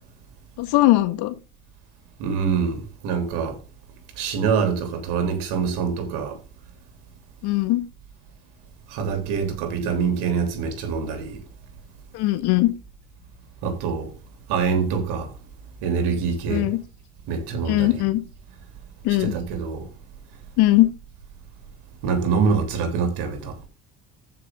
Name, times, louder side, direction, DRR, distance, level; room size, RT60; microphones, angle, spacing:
voice 1, 0.6-1.3 7.4-7.8 12.1-12.7 16.5-16.8 17.7-18.2 19.0-19.3 20.6-20.9, left 17 dB, 55° left, 1.8 m, -19 dB
voice 2, 2.2-3.6 4.2-6.4 8.9-11.4 13.6-14.1 14.5-15.3 15.8-16.7 17.3-18.1 19.1-19.8 22.0-23.6, right 5 dB, 60° right, 3.3 m, -25 dB
14.5 x 5.9 x 3.7 m
hypercardioid pair, 65°, 44 cm